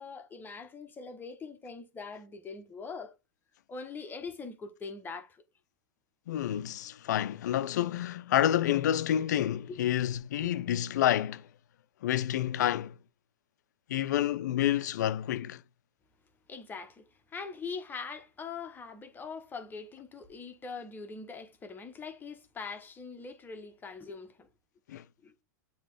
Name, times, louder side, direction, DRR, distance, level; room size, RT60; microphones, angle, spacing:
voice 1, 0.0-3.1 3.7-5.4 9.7-9.8 10.4-10.5 16.5-24.5 25.2-25.3, left 4 dB, 20° left, 1.3 m, -42 dB
voice 2, 6.3-11.4 12.0-12.9 13.9-15.6 24.9-25.0, left 11 dB, 70° left, 0.6 m, -29 dB
7.4 x 3.2 x 4.8 m
hypercardioid pair, 105°, 10 cm